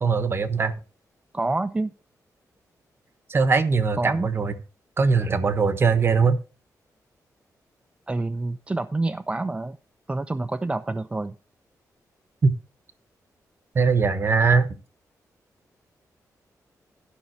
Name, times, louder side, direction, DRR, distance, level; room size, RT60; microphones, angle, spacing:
voice 1, 0.0-0.8 3.3-4.5 5.0-6.4 12.4-12.5 13.7-14.7, right 4 dB, 40° right, 11 dB, 1.1 m, -21 dB
voice 2, 1.3-1.9 4.0-4.3 8.1-9.8 10.1-11.3, right 2 dB, 15° right, 8 dB, 0.4 m, -27 dB
11.5 x 5.5 x 4.6 m, 0.34 s
wide cardioid pair, 125°, 6 cm